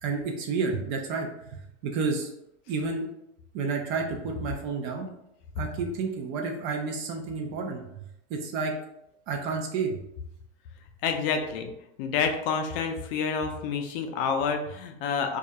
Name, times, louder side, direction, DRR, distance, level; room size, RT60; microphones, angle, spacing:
voice 1, 0.0-2.3 2.7-3.1 3.5-5.1 5.6-7.8 8.3-8.7 9.3-10.0, right 4 dB, 35° right, 2 dB, 0.4 m, -30 dB
voice 2, 11.0-11.7 12.0-15.4, left 6 dB, 55° left, 5 dB, 0.4 m, -28 dB
2.3 x 2.1 x 2.7 m, 0.79 s
hypercardioid pair, 120°, 35 cm